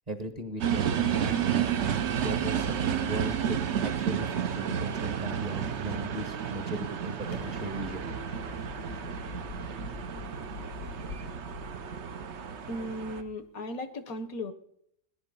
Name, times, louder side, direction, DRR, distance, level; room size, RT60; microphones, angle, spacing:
voice 1, 0.1-1.5 2.2-8.1, right 1 dB, 25° right, 8 dB, 1.1 m, -38 dB
sound 1, 0.6-13.2, right 8 dB, 50° right, 1.0 m, -31 dB
Explosion, 7.3-13.3, left 4 dB, 90° left, 1.8 m, -44 dB
voice 2, 12.7-14.5, left 1 dB, 65° left, 12 dB, 1.3 m, -36 dB
18.5 x 10.5 x 5.4 m, 0.72 s
omnidirectional pair, 1.7 m